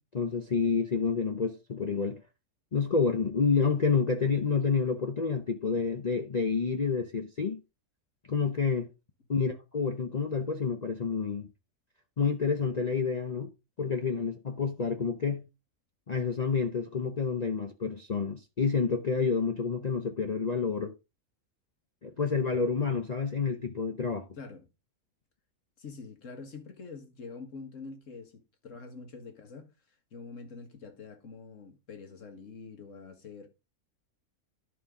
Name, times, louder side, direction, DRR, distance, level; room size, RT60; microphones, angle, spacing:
voice 1, 0.1-2.2 2.7-7.6 8.3-8.9 9.3-11.5 12.2-13.5 13.8-15.4 16.1-20.9 22.0-24.3, left 5 dB, 40° left, 0.6 m, -29 dB
voice 2, 24.4-24.7 25.8-29.7 30.1-33.5, left 4 dB, 60° left, 1.9 m, -45 dB
11.0 x 5.6 x 3.7 m
omnidirectional pair, 1.5 m